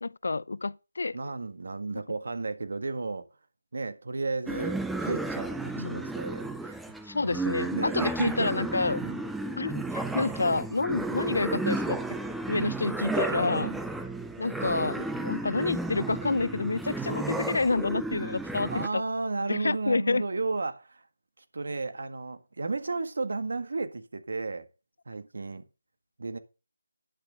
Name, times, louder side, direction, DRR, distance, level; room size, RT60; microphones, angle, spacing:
voice 1, 0.0-1.2 5.8-6.1 7.1-9.0 9.6-12.0 12.5-13.7 14.4-19.0 19.5-20.2, left 3 dB, 65° left, 0.4 m, -29 dB
voice 2, 1.1-3.3 3.7-6.7 7.7-8.5 9.0-9.2 10.9-11.0 12.5-12.7 13.5-13.8 18.7-21.1 21.4-24.7 25.0-25.6 26.2-26.4, right 3 dB, 60° right, 1.6 m, -33 dB
sound 1, 4.5-18.9, right 2 dB, ahead, 0.4 m, -33 dB
10.0 x 6.4 x 5.2 m
figure-of-eight pair, 170°, 0 cm